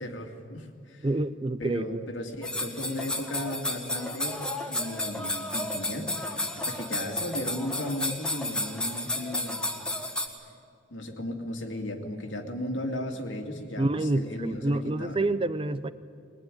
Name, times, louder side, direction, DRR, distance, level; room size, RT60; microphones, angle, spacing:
voice 1, 0.0-1.1 1.6-9.7 10.9-15.2, left 1 dB, 85° left, 3 dB, 2.5 m, -36 dB
voice 2, 1.0-2.0 13.8-15.9, right 2 dB, 25° right, 13 dB, 0.6 m, -27 dB
sound 1, 2.4-10.3, left 1 dB, 5° left, 1.6 m, -32 dB
22.0 x 20.5 x 9.9 m, 2.4 s
head